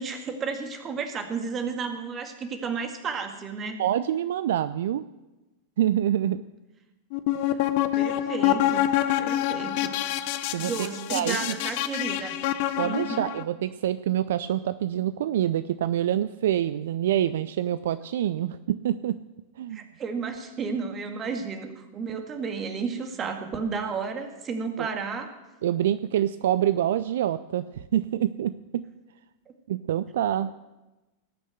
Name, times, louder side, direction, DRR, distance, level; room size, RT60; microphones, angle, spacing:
voice 1, 0.0-3.8 7.9-8.9 9.2-9.9 10.6-12.4 12.8-13.3 19.7-25.4, right 5 dB, 25° right, 6 dB, 1.9 m, -32 dB
voice 2, 3.8-5.1 5.8-6.4 10.5-11.6 12.8-19.2 19.6-19.8 24.8-24.9 25.6-28.8 29.7-30.5, right 11 dB, 60° right, 15 dB, 0.4 m, -26 dB
sound 1, 7.1-13.4, left 13 dB, 45° left, 0.8 m, -26 dB
18.5 x 6.3 x 7.8 m, 1.1 s
figure-of-eight pair, 90°, 0 cm